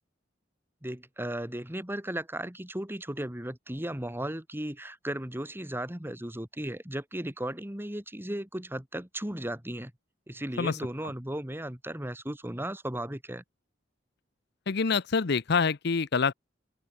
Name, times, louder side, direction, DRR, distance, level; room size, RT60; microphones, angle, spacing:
voice 1, 0.8-9.9 10.3-13.4, right 1 dB, 10° right, 2.4 m, -36 dB
voice 2, 14.7-16.3, left 5 dB, 60° left, 0.7 m, -26 dB
open air
head